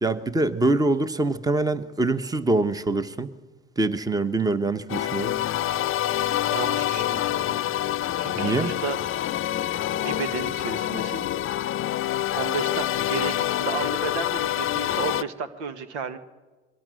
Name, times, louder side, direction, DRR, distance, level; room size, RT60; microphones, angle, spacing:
voice 1, 0.0-3.3 3.8-5.3 8.3-8.7, right 2 dB, 10° right, 1.2 m, -24 dB
sound 1, 4.9-15.2, left 12 dB, 40° left, 0.7 m, -26 dB
voice 2, 6.5-7.7 8.2-9.3 10.0-11.2 12.4-16.2, right 6 dB, 85° right, 1.6 m, -33 dB
23.0 x 21.5 x 6.5 m
hypercardioid pair, 80°, 33 cm